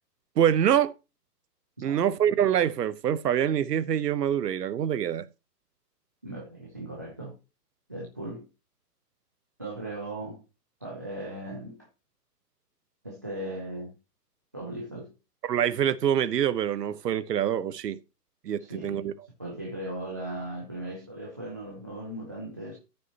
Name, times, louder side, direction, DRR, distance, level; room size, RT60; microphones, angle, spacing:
voice 1, 0.4-0.9 1.8-5.2 15.4-18.0 18.4-19.1, right 9 dB, 80° right, 1.0 m, -25 dB
voice 2, 6.2-7.4 7.9-8.5 9.6-10.4 10.8-11.9 13.0-14.0 14.5-15.1 18.6-19.1 19.4-22.8, right 1 dB, 15° right, 0.3 m, -38 dB
14.0 x 5.5 x 2.8 m
hypercardioid pair, 145°, 48 cm